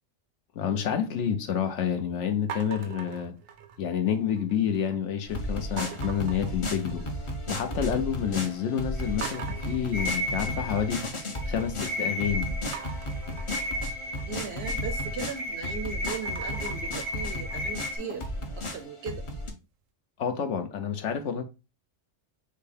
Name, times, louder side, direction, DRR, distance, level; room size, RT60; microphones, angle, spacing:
voice 1, 0.5-3.3 3.8-7.1 7.5-11.1 11.5-12.6 20.2-21.4, left 8 dB, 70° left, 1.0 m, -29 dB
sound 1, 2.5-4.0 4.4-4.9 5.8-7.3 7.6-8.2 8.6-8.7 9.2-11.3 12.7-15.5 15.9-18.8, right 8 dB, 90° right, 1.0 m, -43 dB
sound 2, 5.3-19.5, left 1 dB, 30° left, 0.6 m, -34 dB
sound 3, 9.0-18.0, left 1 dB, 30° right, 0.6 m, -35 dB
voice 2, 14.2-18.3 18.5-19.2, right 6 dB, 65° right, 0.8 m, -38 dB
6.2 x 2.2 x 3.3 m
omnidirectional pair, 1.3 m